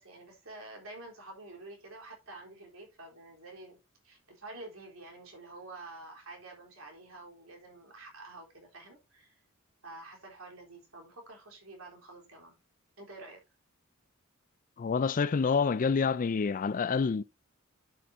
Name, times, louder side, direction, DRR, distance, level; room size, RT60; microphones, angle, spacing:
voice 1, 0.0-9.4 9.8-12.6 13.0-13.4, right 2 dB, 75° right, 3.7 m, -49 dB
voice 2, 14.8-17.2, left 5 dB, 40° left, 0.4 m, -27 dB
11.0 x 6.5 x 2.7 m
head